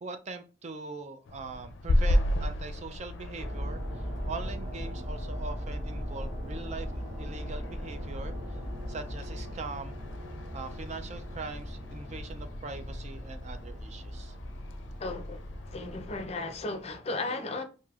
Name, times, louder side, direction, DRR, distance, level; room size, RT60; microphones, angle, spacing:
voice 1, 0.0-8.6 8.9-10.0 10.5-14.4, right 4 dB, 40° right, 0.4 m, -42 dB
sound 1, 1.3-16.3, left 1 dB, 90° left, 0.4 m, -35 dB
sound 2, 3.4-17.0, equal, 20° right, 0.9 m, -39 dB
voice 2, 15.0-15.4 15.7-17.6, left 2 dB, 35° left, 0.5 m, -35 dB
4.8 x 2.7 x 2.4 m
head